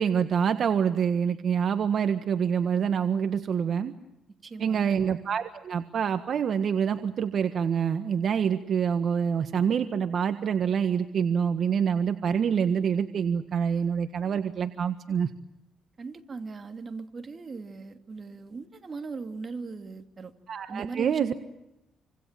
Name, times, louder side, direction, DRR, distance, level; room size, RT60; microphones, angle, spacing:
voice 1, 0.0-3.9 4.6-15.3 20.5-21.3, right 7 dB, 55° right, 8 dB, 1.5 m, -26 dB
voice 2, 4.4-5.0 16.0-20.3 20.7-21.3, right 4 dB, 35° right, 6 dB, 2.8 m, -39 dB
28.0 x 25.5 x 7.6 m, 0.90 s
cardioid pair, 90°, 0 cm